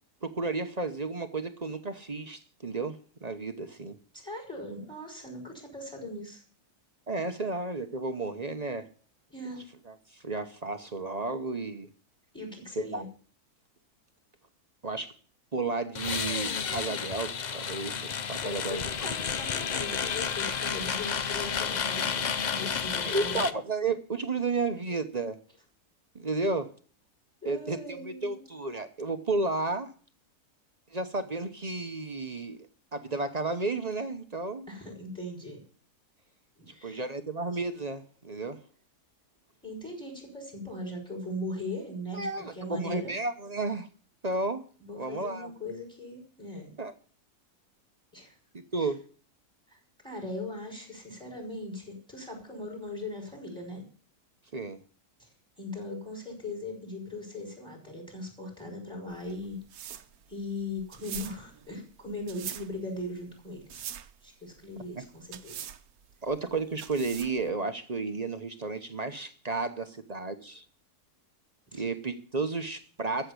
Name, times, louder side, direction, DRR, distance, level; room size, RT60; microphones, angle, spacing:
voice 1, 0.2-4.0 7.1-8.9 9.9-11.9 12.8-13.0 14.8-15.1 15.5-19.0 23.0-25.4 26.1-26.7 27.4-29.9 30.9-32.7 32.9-34.7 36.8-38.6 42.1-43.9 44.2-44.6 45.0-45.5 46.8-46.9 48.7-49.0 54.5-54.8 66.2-70.7 71.7-73.3, right 3 dB, 30° right, 8 dB, 0.8 m, -32 dB
voice 2, 4.1-6.4 9.3-9.6 12.3-13.1 18.4-23.4 27.4-28.4 34.7-35.6 36.6-37.0 39.6-43.1 44.8-46.7 48.1-48.3 48.8-48.9 49.7-53.9 55.2-55.3 55.6-59.6 60.3-63.9 64.2-65.6 71.7-71.8, left 2 dB, 5° left, 2 dB, 5.6 m, -39 dB
sound 1, 15.9-23.5, left 6 dB, 60° left, 0.4 m, -31 dB
sound 2, 59.1-67.5, right 10 dB, 70° right, 1.2 m, -43 dB
14.5 x 7.0 x 8.2 m, 0.43 s
omnidirectional pair, 1.7 m